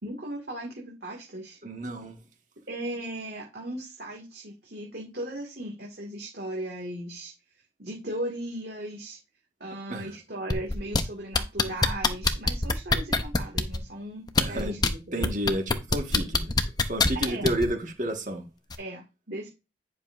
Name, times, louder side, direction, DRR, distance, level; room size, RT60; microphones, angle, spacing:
voice 1, 0.0-1.6 2.7-7.3 7.8-9.2 9.6-15.3 17.2-17.6 18.8-19.5, right 1 dB, 55° right, 2.1 m, -37 dB
voice 2, 1.6-2.2 9.9-10.1 14.4-14.8 15.1-16.5 16.9-18.5, right 1 dB, 40° right, 1.6 m, -30 dB
sound 1, 10.5-11.0 11.3-13.8 14.3-14.9 15.2-17.7 18.7-18.8, left 3 dB, 20° left, 0.7 m, -23 dB
10.0 x 6.7 x 2.6 m
head